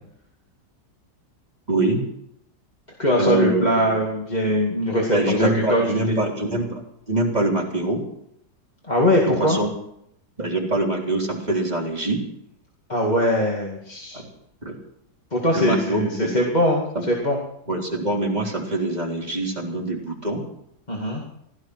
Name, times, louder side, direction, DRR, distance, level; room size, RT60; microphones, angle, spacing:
voice 1, 1.7-2.0 3.2-4.0 5.1-8.0 9.2-9.7 10.4-12.2 14.1-14.3 14.6-14.8 15.5-16.4 17.0-17.1 17.7-20.4, right 2 dB, 20° right, -2 dB, 3.6 m, -24 dB
voice 2, 3.0-6.2 8.9-9.6 12.9-14.2 15.3-17.4 20.9-21.2, left 1 dB, 25° left, -2 dB, 2.4 m, -22 dB
16.5 x 13.5 x 6.2 m, 0.76 s
omnidirectional pair, 1.9 m